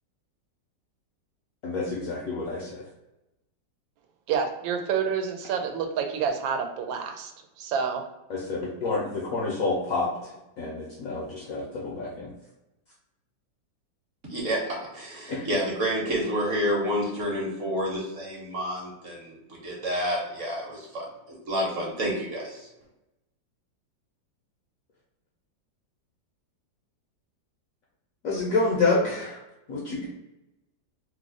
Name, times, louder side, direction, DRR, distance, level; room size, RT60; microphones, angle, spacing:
voice 1, 1.6-2.8 8.3-10.1 10.6-12.3 15.3-15.4 28.2-29.4 29.7-30.1, left 3 dB, 70° left, -3 dB, 0.8 m, -28 dB
voice 2, 4.3-7.3 7.6-8.0, right 6 dB, 85° right, 5 dB, 1.3 m, -28 dB
voice 3, 14.3-14.6 14.9-21.0 21.5-22.7, equal, 55° right, -2 dB, 0.9 m, -29 dB
3.2 x 2.0 x 3.7 m, 0.95 s
omnidirectional pair, 2.0 m